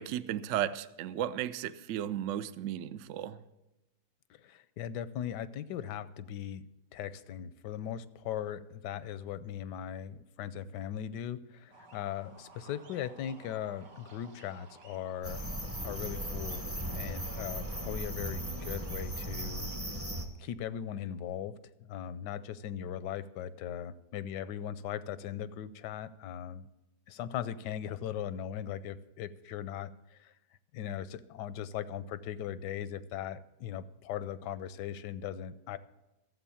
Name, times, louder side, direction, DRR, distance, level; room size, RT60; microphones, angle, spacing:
voice 1, 0.0-3.4, right 11 dB, 70° right, 0.7 m, -34 dB
voice 2, 4.3-6.6 6.9-15.5 15.8-16.6 16.9-19.7 20.4-26.7 27.1-30.3 30.7-35.8, left 10 dB, 85° left, 1.2 m, -39 dB
sound 1, 11.7-19.8, right 3 dB, 85° right, 2.0 m, -56 dB
sound 2, 15.2-20.3, right 1 dB, 10° right, 0.7 m, -37 dB
13.5 x 7.7 x 7.1 m
omnidirectional pair, 1.8 m